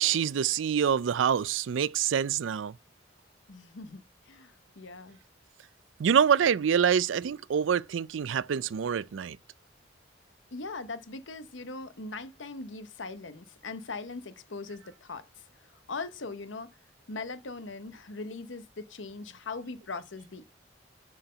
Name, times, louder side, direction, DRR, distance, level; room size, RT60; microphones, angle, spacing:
voice 1, 0.0-2.7 6.0-9.4, right 8 dB, 90° right, 0.4 m, -26 dB
voice 2, 3.5-5.2 10.5-15.4 15.9-16.7 17.1-20.4, left 3 dB, 90° left, 1.0 m, -40 dB
7.6 x 4.5 x 6.7 m
head